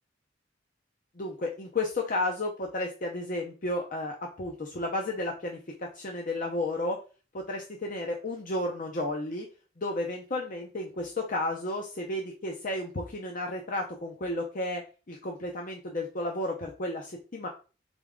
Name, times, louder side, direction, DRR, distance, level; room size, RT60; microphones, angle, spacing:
voice 1, 1.2-7.0 7.3-9.5 9.8-14.8 15.1-17.5, left 2 dB, 45° left, 1 dB, 0.7 m, -32 dB
4.0 x 3.5 x 3.6 m, 0.34 s
head